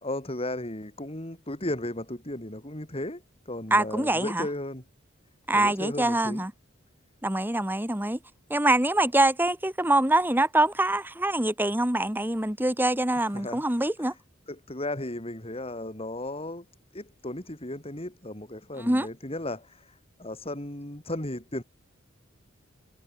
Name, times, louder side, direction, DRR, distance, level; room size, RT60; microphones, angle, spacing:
voice 1, 0.0-4.8 5.5-6.4 13.2-13.6 14.0-14.2 14.5-16.7 16.9-21.6, left 1 dB, 30° left, 3.5 m, -35 dB
voice 2, 3.7-4.5 5.5-6.5 7.2-8.2 8.5-14.1 18.8-19.1, right 1 dB, 10° right, 2.4 m, -24 dB
head